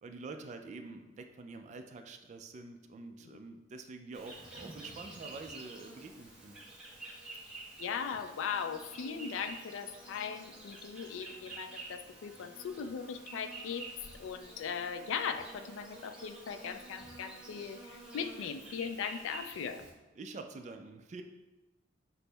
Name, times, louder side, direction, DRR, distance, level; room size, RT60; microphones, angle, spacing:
voice 1, 0.0-6.6 20.2-21.2, right 3 dB, 40° right, 6 dB, 0.3 m, -47 dB
Insect, 4.1-19.9, right 2 dB, 5° right, 0.7 m, -49 dB
voice 2, 7.5-13.9 14.2-19.8, left 6 dB, 75° left, 10 dB, 0.3 m, -39 dB
6.0 x 2.0 x 3.3 m, 1.1 s
head